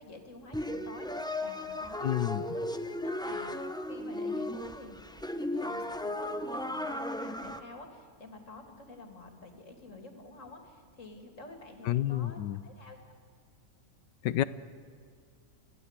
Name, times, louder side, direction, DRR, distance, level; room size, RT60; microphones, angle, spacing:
voice 1, 0.0-2.7 3.0-5.0 5.3-13.0, left 2 dB, 45° left, 4 dB, 3.1 m, -49 dB
sound 1, 0.5-7.6, left 1 dB, 5° left, 0.4 m, -35 dB
voice 2, 2.0-2.4 11.9-12.6 14.2-14.4, left 13 dB, 85° left, 16 dB, 1.4 m, -29 dB
28.0 x 15.5 x 8.2 m, 2.2 s
omnidirectional pair, 1.8 m